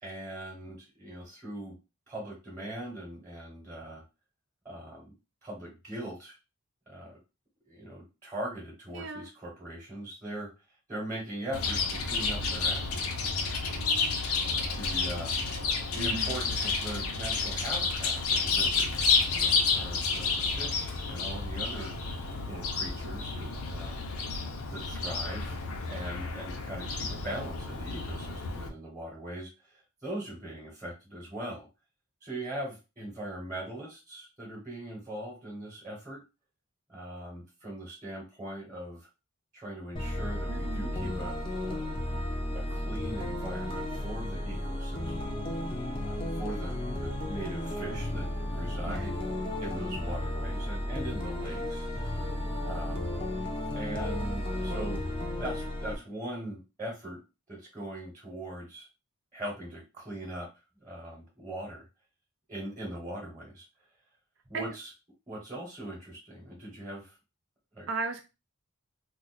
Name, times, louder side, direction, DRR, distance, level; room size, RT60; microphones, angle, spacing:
voice 1, 0.0-1.8 2.1-4.0 4.6-5.1 5.4-6.4 6.9-7.2 7.7-10.5 10.9-12.9 14.8-15.3 15.9-21.9 22.4-24.1 24.7-25.6 25.9-31.7 32.2-36.2 36.9-39.1 39.5-41.4 41.6-42.0 42.5-45.4 46.0-48.3 48.5-49.2 49.6-51.9 52.6-53.2 53.7-55.0 55.4-57.2 57.5-58.9 59.3-60.5 60.8-61.8 62.5-63.6 64.5-64.9 65.3-67.2 67.7-67.9, right 1 dB, 20° right, -2 dB, 1.0 m, -40 dB
voice 2, 8.9-9.3 16.0-16.3 40.5-40.9 48.9-49.1 64.5-64.7 67.9-68.2, right 4 dB, 55° right, 6 dB, 0.3 m, -36 dB
Chirp tweet, 11.5-28.7, left 4 dB, 85° left, 0.6 m, -30 dB
sound 1, 40.0-56.0, left 1 dB, 25° left, 0.5 m, -33 dB
2.4 x 2.3 x 4.0 m, 0.28 s
head